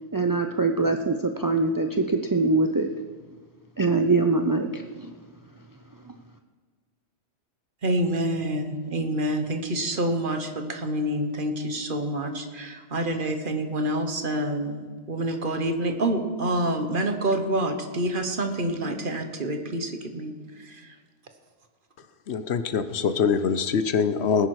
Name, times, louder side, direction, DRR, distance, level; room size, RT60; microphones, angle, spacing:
voice 1, 0.1-2.9 3.8-5.1, right 3 dB, 30° right, 5 dB, 0.3 m, -23 dB
voice 2, 7.8-20.3 20.6-20.8, right 1 dB, 45° right, 6 dB, 1.3 m, -27 dB
voice 3, 22.3-24.5, left 6 dB, 65° left, 12 dB, 1.0 m, -24 dB
19.5 x 10.5 x 4.8 m, 1.5 s
omnidirectional pair, 1.2 m